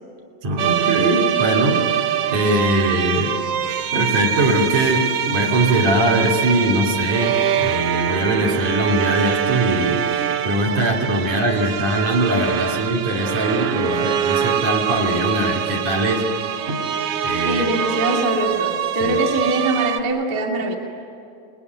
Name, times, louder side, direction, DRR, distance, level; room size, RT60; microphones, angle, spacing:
voice 1, 0.4-1.8 2.3-3.3 3.9-16.2 16.7-16.8 17.2-17.8 19.0-19.2, right 1 dB, 55° right, -1 dB, 3.6 m, -21 dB
sound 1, 0.6-20.0, right 9 dB, 90° right, 1.3 m, -24 dB
voice 2, 17.4-20.8, right 2 dB, 30° right, 0 dB, 2.4 m, -22 dB
28.5 x 20.0 x 9.4 m, 2.4 s
omnidirectional pair, 3.8 m